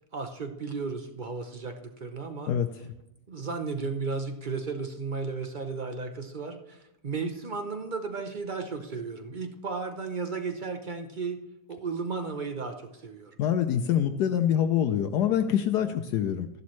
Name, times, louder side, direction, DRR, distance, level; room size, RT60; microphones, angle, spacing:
voice 1, 0.1-2.6 3.3-11.4 11.7-13.4, right 4 dB, 60° right, 6 dB, 0.5 m, -34 dB
voice 2, 13.4-16.5, left 9 dB, 70° left, 8 dB, 1.1 m, -25 dB
13.5 x 11.5 x 3.2 m, 0.87 s
omnidirectional pair, 1.9 m